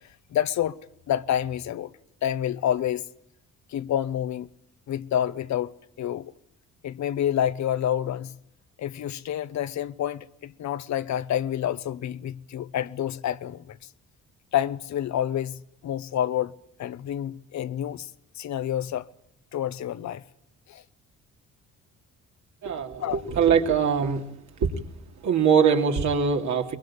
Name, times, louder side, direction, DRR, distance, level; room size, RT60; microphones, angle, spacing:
voice 1, 0.3-0.8 1.1-1.9 2.2-3.0 3.7-4.5 4.9-5.7 6.0-6.3 6.8-8.4 8.8-13.8 14.5-16.5 16.8-18.1 18.4-19.1 19.5-20.2 20.7-20.8 23.0-23.2, left 10 dB, 65° left, 1.0 m, -28 dB
voice 2, 22.6-24.2 24.6-24.7 25.2-26.8, right 6 dB, 70° right, 2.9 m, -22 dB
23.0 x 21.0 x 8.8 m
cardioid pair, 90°, 30 cm